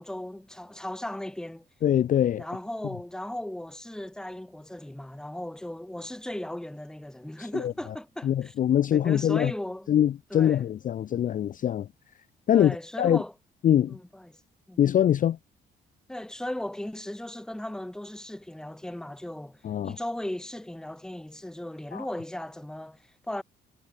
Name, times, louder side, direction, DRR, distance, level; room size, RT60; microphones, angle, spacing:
voice 1, 0.0-1.7 2.4-8.5 8.9-9.9 10.3-10.7 12.5-13.3 13.9-14.4 14.7-14.8 16.1-23.4, left 1 dB, 5° left, 0.8 m, -37 dB
voice 2, 1.8-2.4 7.4-7.7 8.2-9.5 9.9-11.9 12.5-13.2 13.6-14.0 14.8-15.4 19.6-20.0 21.9-22.1, left 10 dB, 45° left, 0.4 m, -23 dB
cardioid pair, 90°, 20 cm